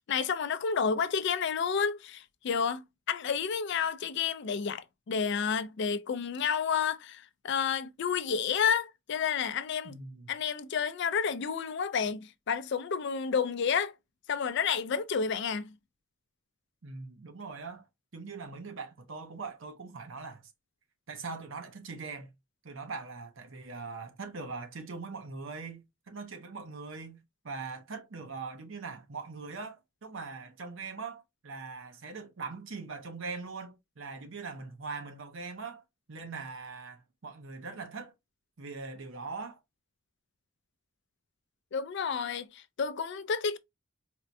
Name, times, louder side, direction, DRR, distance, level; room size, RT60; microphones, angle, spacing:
voice 1, 0.1-9.9 10.3-13.9 14.3-15.7 41.7-43.6, left 6 dB, 55° left, 0.4 m, -30 dB
voice 2, 9.8-10.3 16.8-17.8 18.1-20.4 21.1-22.3 22.6-35.8 36.1-38.1 38.6-39.6, right 4 dB, 65° right, 0.7 m, -41 dB
4.3 x 2.2 x 2.5 m
head